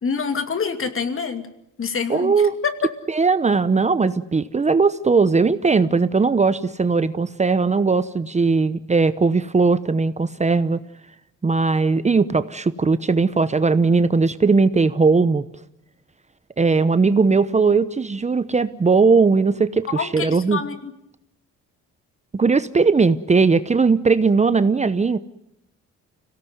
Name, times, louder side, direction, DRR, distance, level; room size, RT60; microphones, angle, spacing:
voice 1, 0.0-1.4 1.8-2.3 2.6-2.9 20.0-20.9, left 5 dB, 45° left, 8 dB, 2.6 m, -26 dB
voice 2, 2.1-2.5 3.1-10.8 11.4-15.5 16.6-20.6 22.3-25.2, right 4 dB, 25° right, 14 dB, 0.8 m, -18 dB
25.5 x 17.5 x 9.4 m, 0.84 s
cardioid pair, 90°, 30 cm